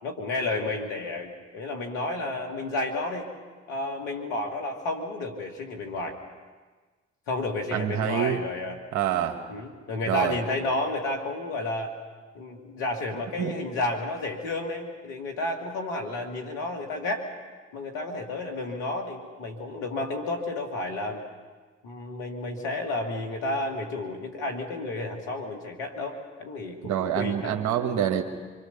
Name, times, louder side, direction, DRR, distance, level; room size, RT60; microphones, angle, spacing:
voice 1, 0.0-3.3 3.7-6.2 7.3-8.8 9.5-11.9 12.3-17.3 17.7-21.2 21.8-27.6, left 2 dB, 90° left, 3 dB, 2.4 m, -31 dB
voice 2, 7.7-8.4 8.9-9.4 10.1-10.4 13.4-13.5 26.8-28.2, right 10 dB, 75° right, 4 dB, 1.7 m, -26 dB
26.0 x 23.0 x 6.9 m, 1.4 s
hypercardioid pair, 40°, 29 cm